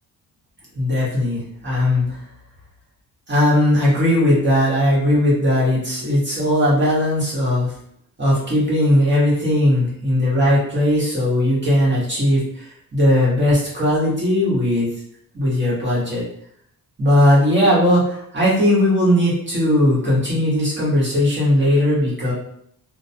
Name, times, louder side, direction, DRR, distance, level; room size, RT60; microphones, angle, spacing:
voice 1, 0.7-2.2 3.3-7.7 8.2-14.9 15.3-16.2 17.0-22.3, left 1 dB, 30° right, -7 dB, 1.0 m, -18 dB
2.1 x 2.1 x 2.6 m, 0.71 s
cardioid pair, 120°, 36 cm